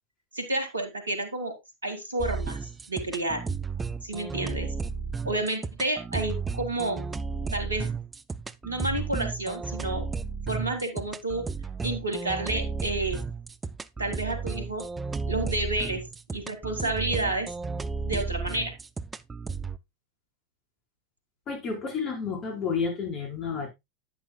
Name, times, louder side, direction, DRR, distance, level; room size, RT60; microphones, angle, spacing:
voice 1, 0.3-1.5 1.8-2.6 2.9-3.4 4.0-4.7 5.2-7.1 7.5-7.9 8.6-10.0 10.5-11.4 11.8-13.2 14.0-14.8 15.3-16.0 16.3-17.5 18.0-18.7, right 2 dB, 85° right, 2.1 m, -30 dB
sound 1, 2.2-19.8, right 4 dB, 15° right, 0.6 m, -33 dB
voice 2, 21.5-23.7, left 5 dB, 35° left, 4.3 m, -30 dB
9.9 x 9.5 x 2.3 m
figure-of-eight pair, 90°, 0 cm